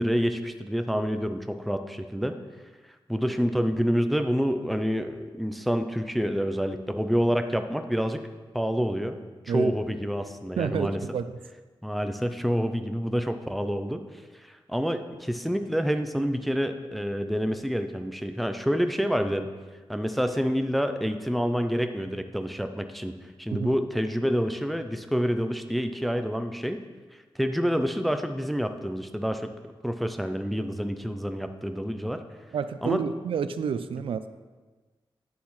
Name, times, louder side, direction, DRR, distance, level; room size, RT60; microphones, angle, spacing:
voice 1, 0.0-2.4 3.1-8.2 8.5-11.0 11.8-14.0 14.3-19.5 19.9-23.1 23.4-26.8 27.4-29.5 29.8-32.2 32.8-33.0, equal, ahead, 8 dB, 0.4 m, -27 dB
voice 2, 10.6-11.3 23.5-23.7 32.5-34.3, right 7 dB, 85° right, 12 dB, 0.4 m, -29 dB
9.4 x 7.1 x 3.1 m, 1.3 s
wide cardioid pair, 165°, 9 cm